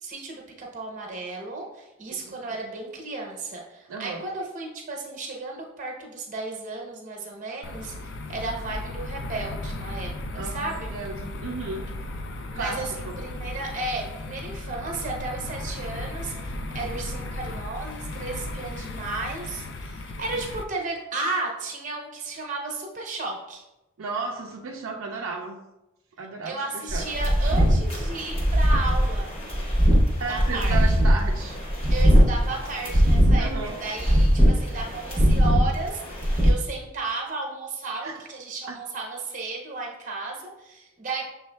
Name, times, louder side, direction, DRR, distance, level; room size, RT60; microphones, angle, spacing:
voice 1, 0.0-10.9 12.5-23.7 26.4-29.3 30.3-30.8 31.9-41.2, right 3 dB, 35° right, 0 dB, 0.8 m, -34 dB
voice 2, 3.9-4.3 10.3-12.1 12.5-13.2 24.0-25.6 26.2-27.1 30.2-31.6 33.4-33.8 38.0-38.3 38.7-38.8, right 4 dB, 70° right, 0 dB, 0.4 m, -34 dB
sound 1, 7.6-20.6, left 2 dB, 55° left, 0.3 m, -35 dB
sound 2, 26.9-36.5, equal, 25° left, 0.8 m, -21 dB
6.3 x 3.4 x 2.2 m, 0.96 s
head